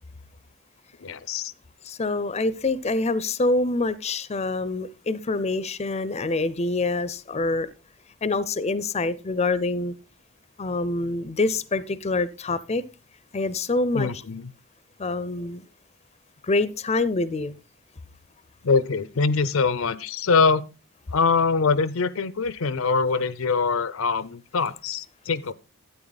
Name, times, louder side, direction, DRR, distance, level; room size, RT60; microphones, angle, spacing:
voice 1, 1.0-1.5 13.9-14.4 18.6-20.6 21.1-25.5, left 4 dB, 85° left, 0.7 m, -23 dB
voice 2, 1.8-7.7 8.2-9.9 10.6-12.8 13.3-14.1 15.0-15.6 16.4-17.6, left 2 dB, 30° left, 0.6 m, -26 dB
12.5 x 9.2 x 4.0 m
head